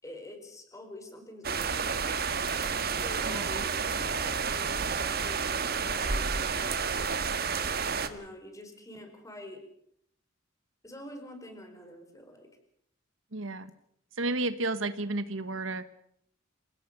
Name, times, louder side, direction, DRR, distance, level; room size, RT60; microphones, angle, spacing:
voice 1, 0.0-2.0 3.0-3.7 4.1-7.1 8.0-9.6 10.8-12.5, left 1 dB, 15° left, 6 dB, 4.6 m, -46 dB
sound 1, 1.4-8.1, right 5 dB, 50° right, 1.6 m, -30 dB
voice 2, 3.3-3.6 13.3-13.7 14.2-15.8, right 2 dB, 75° right, 13 dB, 1.3 m, -32 dB
27.5 x 17.5 x 6.8 m, 0.70 s
head